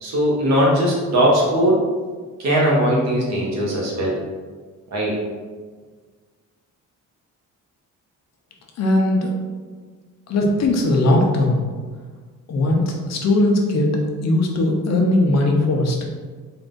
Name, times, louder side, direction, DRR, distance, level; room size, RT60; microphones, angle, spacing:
voice 1, 0.0-1.8 2.4-4.2 4.9-5.1, equal, 55° right, -4 dB, 1.1 m, -19 dB
voice 2, 8.8-9.3 10.3-11.6 12.5-13.9 14.2-16.1, left 1 dB, 55° left, 1 dB, 0.7 m, -19 dB
3.8 x 2.5 x 3.8 m, 1.5 s
cardioid pair, 140°, 33 cm